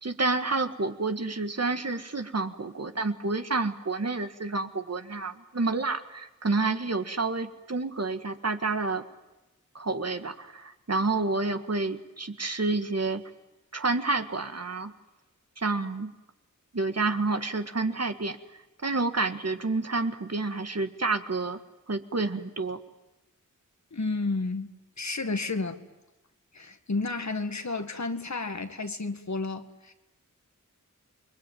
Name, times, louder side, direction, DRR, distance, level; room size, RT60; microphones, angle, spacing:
voice 1, 0.0-9.0 9.8-13.2 13.7-14.9 15.6-16.1 16.7-18.4 18.8-21.6 21.9-22.8, right 3 dB, 50° right, 1.8 m, -29 dB
voice 2, 23.9-24.7 25.0-25.8 26.5-29.9, left 3 dB, 60° left, 2.0 m, -31 dB
29.0 x 22.0 x 9.3 m
wide cardioid pair, 75°, 32 cm